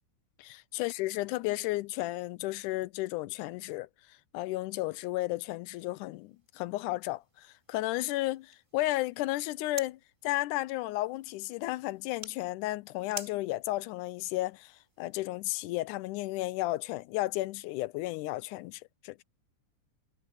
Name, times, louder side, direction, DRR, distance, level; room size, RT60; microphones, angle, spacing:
voice 1, 0.4-3.9 4.3-19.2, left 18 dB, 85° left, 2.1 m, -33 dB
sound 1, 6.0-15.3, right 1 dB, 10° right, 3.9 m, -51 dB
omnidirectional pair, 3.5 m